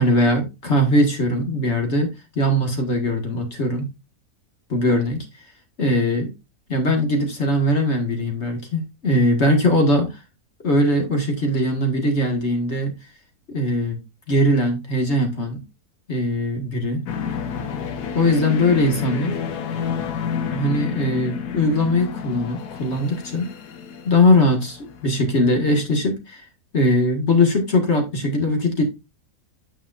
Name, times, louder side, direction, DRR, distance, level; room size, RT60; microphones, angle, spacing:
voice 1, 0.0-2.1 2.4-3.8 4.7-5.2 5.8-6.3 6.7-10.2 10.6-12.9 13.5-14.0 14.3-15.6 16.1-17.0 18.1-19.4 20.5-23.5 24.0-26.4 26.7-28.8, left 1 dB, 45° left, 2.0 m, -20 dB
sound 1, 17.1-25.7, left 7 dB, 90° left, 1.5 m, -30 dB
8.8 x 6.1 x 2.5 m
omnidirectional pair, 1.6 m